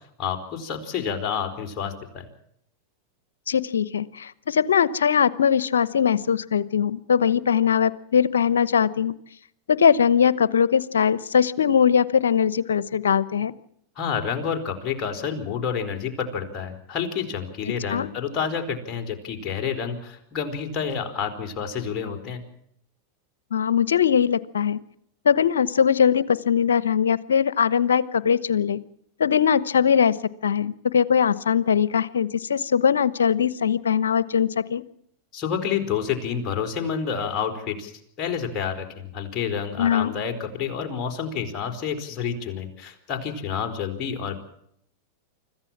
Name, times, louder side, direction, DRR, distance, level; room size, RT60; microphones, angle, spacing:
voice 1, 0.2-2.3 14.0-22.4 35.3-37.9 38.2-44.4, left 7 dB, 35° left, 4 dB, 4.4 m, -29 dB
voice 2, 3.5-9.1 9.7-13.5 17.7-18.1 23.5-24.8 25.2-28.8 29.2-30.2 30.4-34.8 39.8-40.1, left 7 dB, 85° left, 18 dB, 1.0 m, -21 dB
25.5 x 15.0 x 7.4 m, 0.71 s
hypercardioid pair, 105°, 0 cm